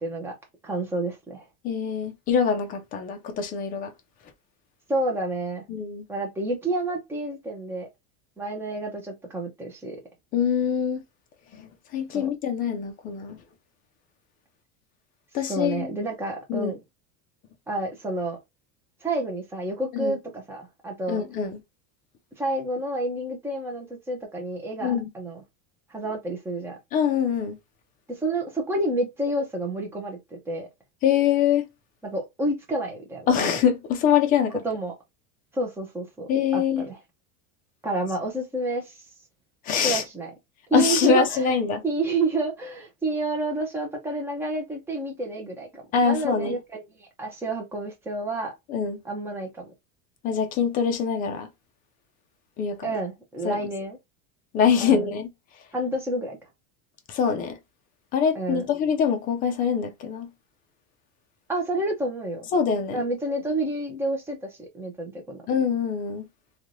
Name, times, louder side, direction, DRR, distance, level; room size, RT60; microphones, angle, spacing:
voice 1, 0.0-0.3 0.6-1.4 4.9-5.6 6.1-7.9 8.4-10.0 12.1-12.3 15.5-16.8 17.7-18.4 19.0-21.2 22.4-25.4 25.9-26.8 28.1-30.7 32.0-33.3 34.6-34.9 35.5-37.0 37.8-38.9 39.8-40.3 40.7-41.5 41.8-48.5 49.0-49.7 52.8-54.0 54.8-55.1 55.7-56.4 58.3-58.7 61.5-62.5 62.9-65.4, right 2 dB, 5° right, 0.8 m, -29 dB
voice 2, 1.6-3.9 5.7-6.0 10.3-11.0 11.6-13.4 15.3-15.9 16.5-16.7 19.9-20.2 21.1-21.6 24.8-25.1 26.9-27.6 31.0-31.7 33.3-34.6 36.3-36.9 39.7-40.0 40.7-41.8 45.9-46.6 48.7-49.0 50.2-51.5 52.6-52.8 53.4-53.6 54.5-55.3 57.1-57.6 58.1-60.3 62.5-63.0 65.5-66.2, left 7 dB, 25° left, 0.4 m, -24 dB
3.2 x 2.7 x 2.5 m
cardioid pair, 170°, 36 cm